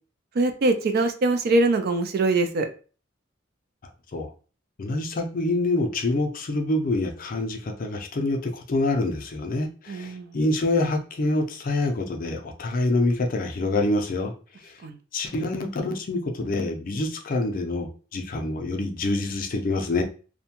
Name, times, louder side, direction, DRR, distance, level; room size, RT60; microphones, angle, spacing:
voice 1, 0.3-2.7 9.9-10.4 14.8-15.0, right 2 dB, 50° right, 8 dB, 0.4 m, -23 dB
voice 2, 4.8-14.3 14.6-14.7 15.1-20.0, left 2 dB, 45° left, 3 dB, 0.5 m, -26 dB
2.6 x 2.2 x 2.8 m, 0.37 s
head